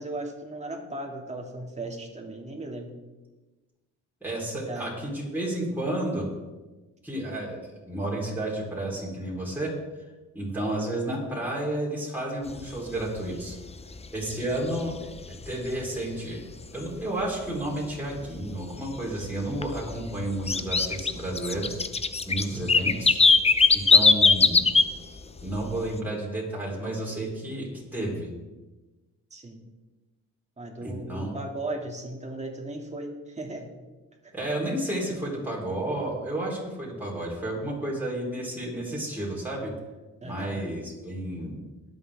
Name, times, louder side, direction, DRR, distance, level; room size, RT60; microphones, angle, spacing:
voice 1, 0.0-2.9 4.6-5.1 22.4-22.7 29.3-29.6 30.6-33.7 34.2-34.3 40.2-40.6, right 2 dB, 20° right, 1 dB, 2.8 m, -37 dB
voice 2, 4.2-6.3 7.0-9.7 10.3-13.6 14.1-14.9 15.3-16.4 16.7-21.8 22.2-23.2 23.7-24.7 25.4-28.3 30.8-31.4 34.3-39.7 40.2-41.6, right 1 dB, 5° right, -5 dB, 4.3 m, -31 dB
sound 1, 12.5-12.6 13.0-13.2 13.5-14.0 14.4-15.6 16.0-16.1 16.6-16.7 17.2-17.3 17.6-17.7 18.2-19.0 19.2-24.9 25.2-25.6, left 4 dB, 20° left, 0.8 m, -21 dB
22.5 x 8.0 x 3.7 m, 1.2 s
cardioid pair, 90°, 30 cm